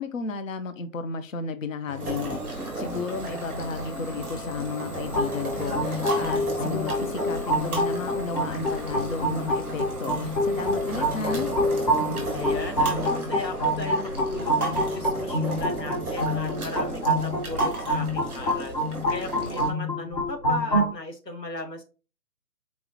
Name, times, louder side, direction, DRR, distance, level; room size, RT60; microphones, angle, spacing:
voice 1, 0.0-11.5, left 4 dB, 55° left, 10 dB, 0.6 m, -33 dB
Idling / Domestic sounds home sounds, 1.9-17.4, left 1 dB, 30° right, 0.9 m, -42 dB
sound 1, 2.0-19.7, right 2 dB, 5° right, 0.9 m, -34 dB
sound 2, 5.1-20.9, equal, 25° left, 0.9 m, -27 dB
voice 2, 12.3-18.7 19.1-21.8, left 2 dB, 80° left, 4 dB, 1.3 m, -36 dB
4.1 x 3.7 x 2.8 m, 0.34 s
figure-of-eight pair, 140°, 49 cm